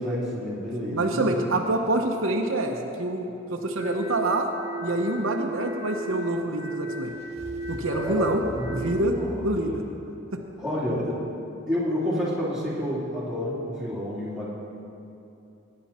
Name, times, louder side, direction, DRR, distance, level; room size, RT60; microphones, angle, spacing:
voice 1, 0.0-1.4 7.9-9.4 10.6-11.2 11.7-14.5, equal, ahead, -8 dB, 2.6 m, -29 dB
voice 2, 0.9-4.5 4.8-7.1 7.7-8.4 8.7-9.1 9.4-9.8 10.3-10.4, right 2 dB, 75° right, 3 dB, 0.9 m, -26 dB
sound 1, 3.8-8.9, right 2 dB, 20° left, 1.8 m, -35 dB
sound 2, 7.1-9.8, equal, 30° right, 1.6 m, -41 dB
17.5 x 9.7 x 4.3 m, 2.7 s
head